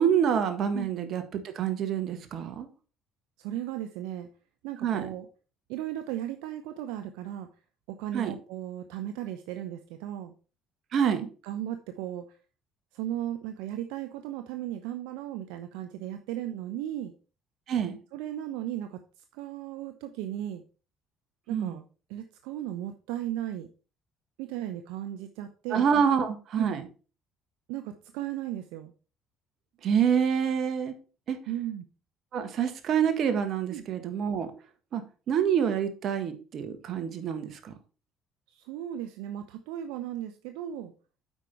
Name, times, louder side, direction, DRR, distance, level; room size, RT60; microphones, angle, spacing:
voice 1, 0.0-2.7 4.8-5.1 8.1-8.3 10.9-11.2 17.7-18.0 21.5-21.8 25.7-26.8 29.8-30.9 31.3-31.4 32.3-34.5 34.9-35.0 35.3-37.7, right 8 dB, 60° right, 8 dB, 1.5 m, -27 dB
voice 2, 3.4-4.3 4.6-5.3 5.7-7.5 7.9-10.3 11.4-12.3 12.9-17.1 18.1-19.0 19.3-20.6 21.5-21.8 22.1-23.7 24.4-25.8 26.6-26.8 27.7-28.9 31.5-31.8 33.7-33.8 38.5-40.9, right 12 dB, 85° right, 8 dB, 0.6 m, -36 dB
8.2 x 5.3 x 4.4 m, 0.36 s
supercardioid pair, 80°, 0 cm